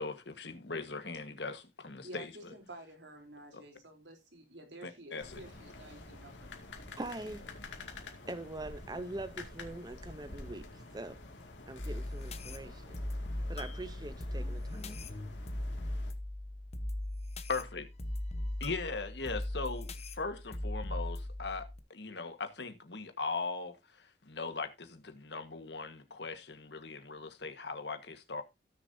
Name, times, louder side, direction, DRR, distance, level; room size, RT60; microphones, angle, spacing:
voice 1, 0.0-2.5 4.8-5.4 17.5-17.9 18.6-28.4, left 4 dB, 70° left, 1.5 m, -39 dB
voice 2, 2.0-6.5, right 1 dB, 80° right, 3.5 m, -51 dB
sound 1, 5.2-16.1, left 2 dB, 90° left, 2.3 m, -49 dB
voice 3, 7.0-7.4 8.2-10.7 10.9-11.2 11.7-13.0 13.5-15.1, right 2 dB, 25° right, 0.7 m, -43 dB
sound 2, 11.8-21.8, left 1 dB, 35° left, 1.0 m, -39 dB
17.0 x 6.7 x 2.7 m
head